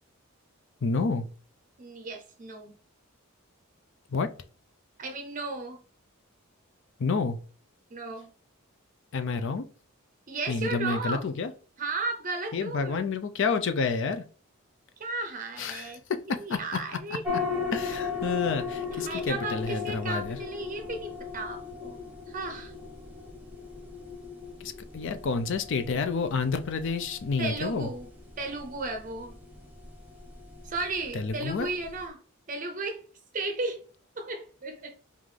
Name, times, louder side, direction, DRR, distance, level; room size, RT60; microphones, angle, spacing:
voice 1, 0.8-1.3 4.1-4.3 7.0-7.4 9.1-9.7 10.5-11.5 12.5-14.2 15.6-15.9 16.3-16.6 17.7-20.4 24.6-27.9 31.1-31.7, left 4 dB, 55° left, 0.4 m, -29 dB
voice 2, 1.8-2.7 5.0-5.8 7.9-8.3 10.3-11.3 11.8-13.0 15.0-16.0 16.4-17.2 18.9-22.0 22.3-22.7 27.4-28.1 28.4-29.4 30.6-32.2 32.5-33.0 33.3-33.8 34.2-35.0, right 3 dB, 35° right, 0.6 m, -34 dB
sound 1, 17.2-32.1, left 5 dB, 10° right, 0.9 m, -38 dB
5.5 x 2.5 x 3.2 m
head